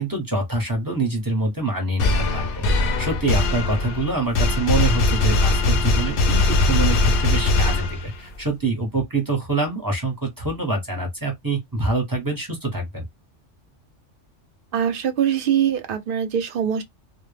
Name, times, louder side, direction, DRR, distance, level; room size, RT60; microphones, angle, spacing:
voice 1, 0.0-13.0, right 2 dB, 20° right, 0.7 m, -25 dB
sound 1, 2.0-8.3, left 2 dB, 60° left, 0.6 m, -20 dB
voice 2, 14.7-16.8, right 9 dB, 55° right, 0.6 m, -22 dB
2.1 x 2.1 x 3.2 m
omnidirectional pair, 1.3 m